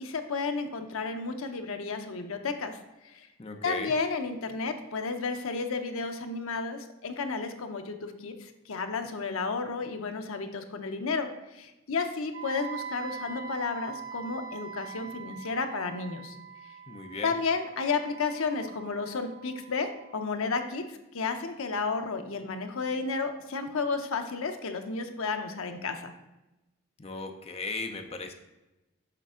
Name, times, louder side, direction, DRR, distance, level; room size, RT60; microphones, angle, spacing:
voice 1, 0.0-3.3 3.6-16.4 17.2-26.1, left 4 dB, 75° left, 6 dB, 0.7 m, -32 dB
voice 2, 3.4-3.9 16.9-17.3 27.0-28.3, left 3 dB, 30° left, 5 dB, 0.5 m, -36 dB
Wind instrument woodwind instrument, 12.3-20.3, right 7 dB, 70° right, 1.2 m, -43 dB
6.7 x 5.0 x 3.6 m, 1.0 s
head